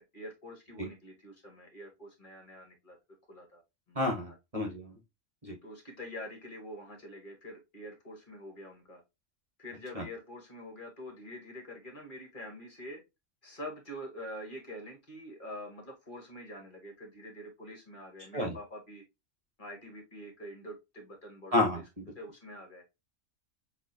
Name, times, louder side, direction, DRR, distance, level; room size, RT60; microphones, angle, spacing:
voice 1, 0.0-3.0 3.3-3.6 3.9-4.0 5.6-9.0 9.6-13.0 13.4-19.0 19.6-21.8 22.1-22.8, equal, 40° left, 1.6 m, -45 dB
voice 2, 3.9-5.0 5.4-5.6 9.9-10.0 18.3-18.5 21.5-22.0, left 2 dB, 30° right, 1.1 m, -30 dB
6.8 x 2.6 x 2.7 m
omnidirectional pair, 1.3 m